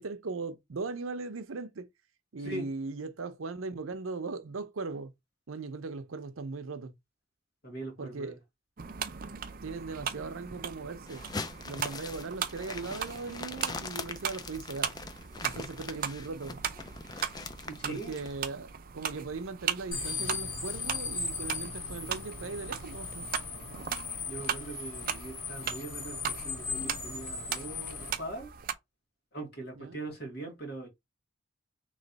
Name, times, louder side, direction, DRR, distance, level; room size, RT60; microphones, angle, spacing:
voice 1, 0.0-1.9 2.3-5.1 5.5-6.9 8.0-8.4 9.6-11.2 11.6-14.9 15.4-16.6 17.9-23.3 29.8-30.0, right 4 dB, 85° right, 0.7 m, -38 dB
voice 2, 7.6-8.4 17.7-18.2 24.3-28.5 29.3-30.9, right 2 dB, 50° left, 2.0 m, -41 dB
sound 1, 8.8-28.7, right 8 dB, 45° right, 0.5 m, -38 dB
sound 2, 11.1-18.3, left 4 dB, 20° left, 0.3 m, -42 dB
sound 3, 19.9-28.1, left 4 dB, 80° left, 1.9 m, -38 dB
3.2 x 3.2 x 4.0 m
head